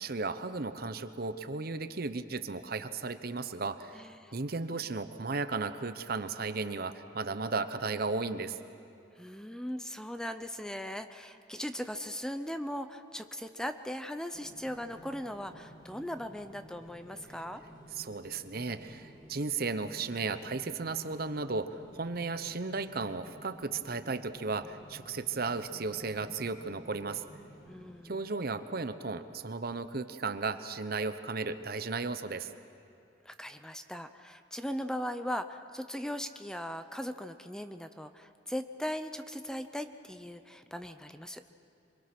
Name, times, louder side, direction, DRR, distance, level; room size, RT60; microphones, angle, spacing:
voice 1, 0.0-4.0 4.3-8.6 17.9-27.2 28.0-32.5, right 4 dB, 55° right, 11 dB, 0.9 m, -35 dB
voice 2, 3.9-4.3 9.2-17.6 27.7-28.3 33.2-41.5, equal, 5° left, 9 dB, 0.6 m, -39 dB
sound 1, 14.3-28.0, equal, 25° left, 2.8 m, -53 dB
25.5 x 23.0 x 6.1 m, 2.7 s
head